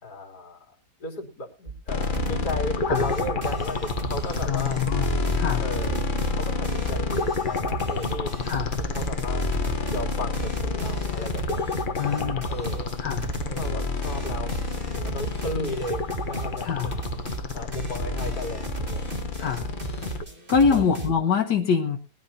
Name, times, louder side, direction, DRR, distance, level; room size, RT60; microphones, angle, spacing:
voice 1, 0.0-4.8 5.6-6.1 6.3-8.3 8.9-9.5 9.9-12.9 13.5-14.6 14.9-17.0 17.5-19.0 19.4-19.5 20.7-20.8, left 1 dB, 70° left, 0 dB, 3.9 m, -35 dB
sound 1, 1.7-1.8 2.0-2.7 2.9-21.1, right 3 dB, 40° right, 3.6 m, -35 dB
sound 2, 1.9-20.2, left 4 dB, 35° left, 1.0 m, -29 dB
voice 2, 4.4-5.1 5.3-5.7 8.4-8.7 12.0-12.5 13.0-13.3 16.6-16.9 19.4-19.7 20.5-22.0, left 6 dB, 90° left, 2 dB, 1.8 m, -24 dB
21.0 x 12.0 x 2.8 m, 0.33 s
omnidirectional pair, 1.8 m